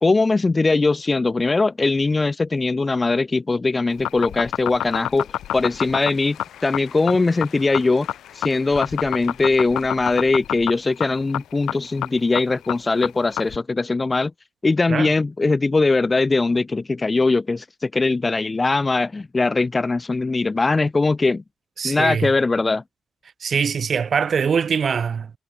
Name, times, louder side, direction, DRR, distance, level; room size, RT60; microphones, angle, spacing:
voice 1, 0.0-5.3 5.5-6.4 6.6-8.1 8.3-14.3 14.6-21.4 21.8-22.8, left 3 dB, 20° left, 0.3 m, -21 dB
sound 1, 3.9-13.6, left 12 dB, 85° left, 1.0 m, -27 dB
sound 2, 4.5-10.3, left 10 dB, 65° left, 4.5 m, -49 dB
voice 2, 21.8-22.3 23.4-25.3, right 6 dB, 40° right, 1.2 m, -22 dB
cardioid pair, 145°, 0 cm